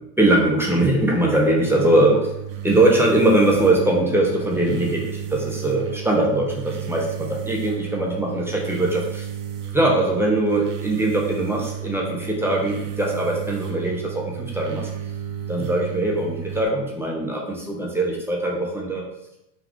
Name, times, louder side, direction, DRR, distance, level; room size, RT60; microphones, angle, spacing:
voice 1, 0.2-2.3 2.6-9.3 9.7-14.9 15.5-19.0, right 1 dB, 5° right, -2 dB, 0.4 m, -21 dB
sound 1, 1.7-16.7, right 10 dB, 55° right, 0.6 m, -33 dB
3.5 x 2.4 x 3.5 m, 0.84 s
supercardioid pair, 110°, 47 cm